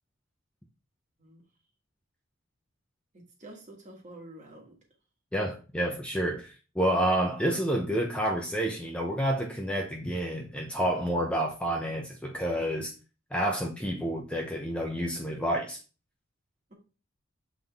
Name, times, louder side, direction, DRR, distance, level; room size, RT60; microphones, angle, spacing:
voice 1, 3.1-4.7, right 1 dB, 35° right, 1.6 m, -48 dB
voice 2, 5.3-12.9 13.3-15.8, right 1 dB, 5° left, 0.7 m, -29 dB
7.5 x 3.7 x 3.5 m
head